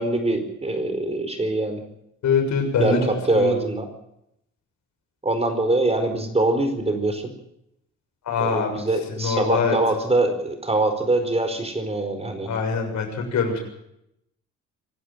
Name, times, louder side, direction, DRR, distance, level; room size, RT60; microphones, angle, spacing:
voice 1, 0.0-1.8 2.8-3.9 5.2-7.2 8.4-12.5, right 2 dB, 20° right, 7 dB, 4.7 m, -23 dB
voice 2, 2.2-3.6 8.2-8.7 9.1-9.8 12.5-13.6, left 5 dB, 70° left, 3 dB, 7.0 m, -23 dB
25.0 x 11.5 x 9.3 m, 0.79 s
cardioid pair, 90°, 30 cm